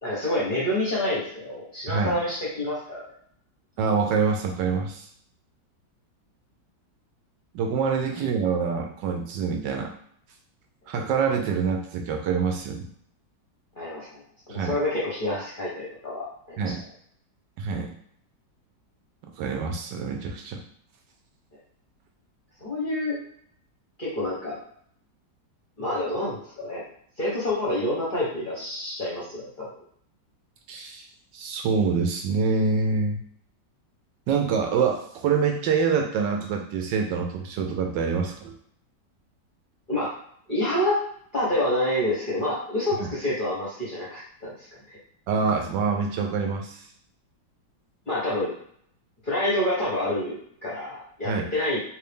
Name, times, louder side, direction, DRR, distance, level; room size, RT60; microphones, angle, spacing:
voice 1, 0.0-3.0 13.8-16.7 22.6-23.2 24.0-24.6 25.8-26.8 27.2-29.7 39.9-40.1 40.5-41.0 41.3-45.0 48.1-48.5 49.2-50.4 50.6-51.8, left 1 dB, 40° left, -7 dB, 0.8 m, -28 dB
voice 2, 3.8-5.1 7.5-9.9 10.9-12.9 14.5-14.8 16.6-16.8 17.6-17.9 19.4-20.6 30.7-31.0 31.3-33.2 34.3-38.5 43.0-43.1 45.3-46.8 51.2-51.5, right 5 dB, 80° right, 3 dB, 1.2 m, -25 dB
3.4 x 2.7 x 3.4 m, 0.64 s
omnidirectional pair, 2.0 m